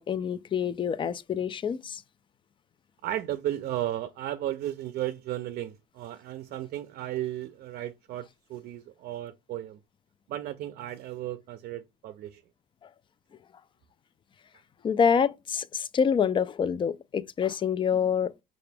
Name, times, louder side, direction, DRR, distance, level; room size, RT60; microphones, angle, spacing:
voice 1, 0.0-2.0 14.8-18.3, left 7 dB, 30° left, 0.3 m, -26 dB
voice 2, 3.0-9.8 10.3-12.4, right 13 dB, 65° right, 0.5 m, -34 dB
5.7 x 2.5 x 3.3 m
cardioid pair, 110°, 17 cm